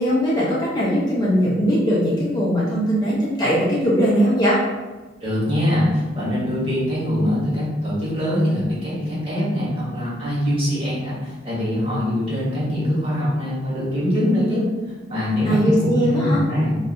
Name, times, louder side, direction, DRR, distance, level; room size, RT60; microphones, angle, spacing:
voice 1, 0.0-4.6 15.4-16.4, equal, 20° left, -7 dB, 0.6 m, -20 dB
voice 2, 5.2-14.7 15.0-16.8, left 1 dB, 30° right, -8 dB, 1.2 m, -23 dB
2.6 x 2.3 x 3.8 m, 1.2 s
head